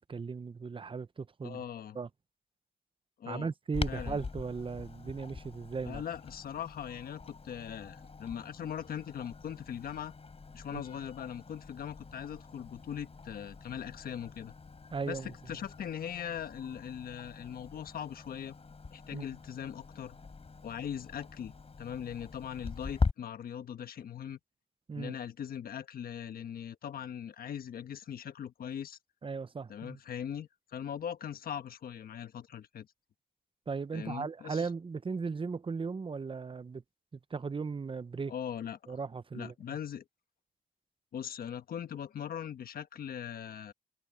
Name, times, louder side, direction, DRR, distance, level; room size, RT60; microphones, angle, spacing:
voice 1, 0.0-1.6 1.9-2.1 3.3-6.0 10.7-10.8 14.9-15.3 19.1-19.2 24.9-25.2 29.2-30.0 33.7-36.8 37.3-38.3 38.9-39.5, right 5 dB, 35° right, 0.8 m, -37 dB
voice 2, 1.4-2.0 3.2-3.5 3.9-4.2 5.8-10.1 10.5-14.5 15.0-18.5 18.9-20.2 20.6-24.4 24.9-29.0 29.7-32.9 33.9-34.7 38.3-39.0 39.3-40.0 41.1-43.7, left 9 dB, 75° left, 1.3 m, -40 dB
Clock, 3.7-23.1, left 4 dB, 40° left, 4.1 m, -42 dB
cardioid pair, 65°, 15 cm